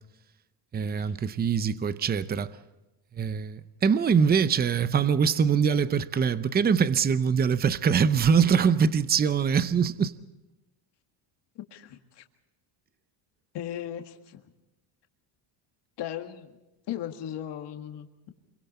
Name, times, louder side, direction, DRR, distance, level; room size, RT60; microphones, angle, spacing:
voice 1, 0.7-2.5 3.1-10.1, right 6 dB, 20° right, 0.6 m, -23 dB
voice 2, 11.7-12.2 13.5-14.4 16.0-16.6 16.9-18.1, left 10 dB, 55° left, 1.9 m, -36 dB
28.0 x 23.0 x 4.3 m
cardioid pair, 140°, 50 cm